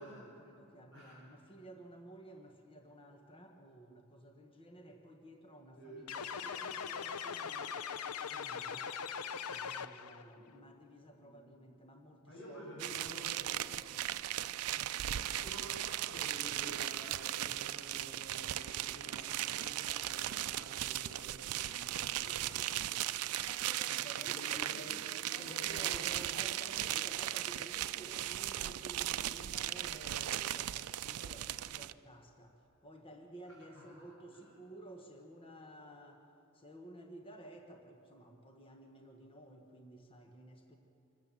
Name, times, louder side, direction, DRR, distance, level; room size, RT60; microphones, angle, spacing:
voice 1, 0.0-7.8 8.3-8.9 9.5-13.7 14.7-15.0 23.1-25.0 25.3-36.2 36.5-40.8, right 1 dB, 25° left, 3 dB, 1.2 m, -54 dB
sound 1, 6.1-10.2, left 7 dB, 90° left, 0.6 m, -41 dB
voice 2, 10.0-10.5 11.2-11.4 12.2-13.9 15.2-23.2 23.6-25.0 25.3-26.1 33.4-33.8 34.3-34.5, equal, 70° left, -7 dB, 6.9 m, -51 dB
sound 2, 12.8-31.9, right 13 dB, 90° right, 0.5 m, -37 dB
25.5 x 14.0 x 7.5 m, 2.7 s
head